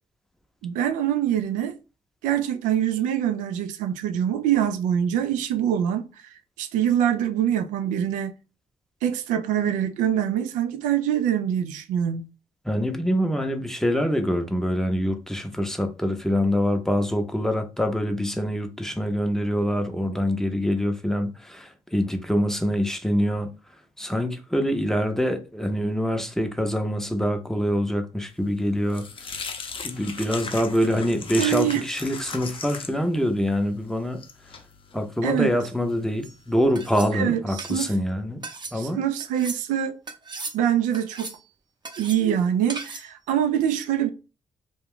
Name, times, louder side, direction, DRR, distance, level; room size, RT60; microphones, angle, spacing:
voice 1, 0.6-1.8 2.2-8.3 9.0-12.2 31.4-31.8 35.2-35.5 37.1-37.9 38.7-40.0 40.5-41.3 42.0-44.1, right 10 dB, 90° right, 0.4 m, -24 dB
voice 2, 12.6-23.5 24.0-29.4 29.8-34.2 34.9-38.4 38.7-39.0, equal, 5° left, 0.6 m, -25 dB
sound 1, 28.4-36.7, left 5 dB, 45° left, 0.6 m, -38 dB
sound 2, 36.2-36.4 36.7-37.1 37.6-37.9 38.4-38.8 39.2-39.6 40.1-40.6 40.9-41.4 41.8-42.2 42.7-43.1, right 3 dB, 35° right, 0.7 m, -37 dB
2.3 x 2.2 x 3.6 m
supercardioid pair, 60°, 13 cm